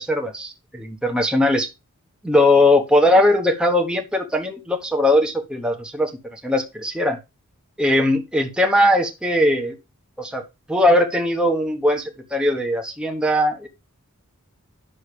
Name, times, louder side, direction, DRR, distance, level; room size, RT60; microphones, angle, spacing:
voice 1, 0.0-1.7 2.2-7.2 7.8-9.8 10.2-10.4 10.7-13.7, left 1 dB, 5° right, 2 dB, 1.2 m, -19 dB
9.8 x 6.3 x 3.5 m, 0.25 s
head